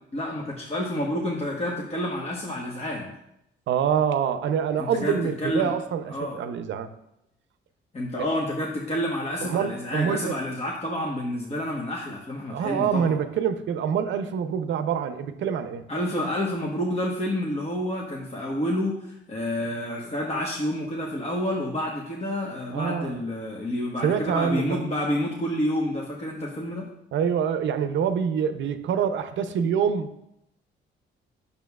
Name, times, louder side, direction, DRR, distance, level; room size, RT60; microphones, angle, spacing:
voice 1, 0.1-3.2 4.8-5.7 6.1-6.4 7.9-13.1 15.9-26.9, left 1 dB, 30° left, -2 dB, 1.2 m, -29 dB
voice 2, 3.7-6.9 9.4-10.3 12.5-15.9 22.7-23.2 24.0-24.8 27.1-30.2, right 7 dB, 70° right, 9 dB, 0.6 m, -26 dB
9.0 x 6.8 x 2.3 m, 0.81 s
cardioid pair, 90°, 20 cm